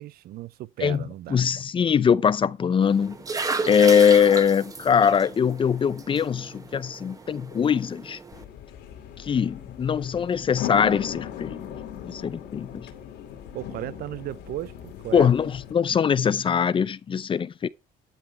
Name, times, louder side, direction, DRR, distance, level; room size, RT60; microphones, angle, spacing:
voice 1, 0.0-1.4 13.5-15.3, right 14 dB, 65° right, 0.4 m, -35 dB
voice 2, 1.3-3.2 3.7-8.2 9.3-11.6 12.0-12.7 15.1-17.7, left 7 dB, 30° left, 0.5 m, -22 dB
sound 1, 2.8-8.4, right 3 dB, 20° right, 1.2 m, -34 dB
sound 2, 8.3-15.7, left 10 dB, 85° left, 2.7 m, -38 dB
11.5 x 5.6 x 4.6 m
cardioid pair, 110°, 17 cm